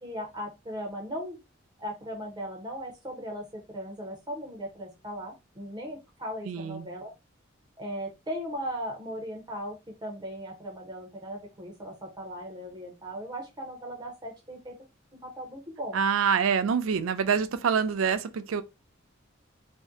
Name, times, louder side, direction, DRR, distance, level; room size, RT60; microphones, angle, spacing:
voice 1, 0.0-1.4 1.8-7.1 7.8-14.8 15.2-16.0, equal, 20° right, 0.6 m, -38 dB
voice 2, 6.5-6.9 15.9-18.6, right 6 dB, 85° right, 0.4 m, -26 dB
2.6 x 2.1 x 3.6 m
head